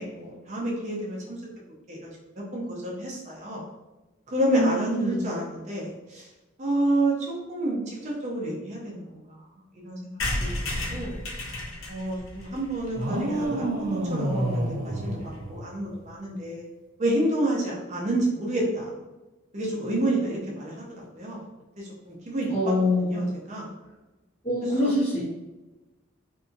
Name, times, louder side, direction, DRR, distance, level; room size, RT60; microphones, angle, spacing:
voice 1, 0.0-1.4 1.9-3.6 4.3-6.3 6.6-7.1 7.5-9.4 9.8-11.1 11.9-14.6 14.8-16.6 17.0-18.8 19.5-21.4 21.8-22.6 23.0-23.7 24.6-24.9, right 1 dB, 35° right, -3 dB, 0.6 m, -29 dB
voice 2, 4.5-5.2 22.5-23.3 24.4-25.2, left 1 dB, 25° left, -13 dB, 0.8 m, -24 dB
sound 1, 10.2-13.9 14.3-14.4 14.6-14.7 14.9-15.0 15.2-15.5, left 1 dB, 75° left, 0.7 m, -33 dB
sound 2, 12.9-16.1, right 1 dB, 75° right, 0.6 m, -29 dB
2.7 x 2.6 x 2.5 m, 1.1 s
head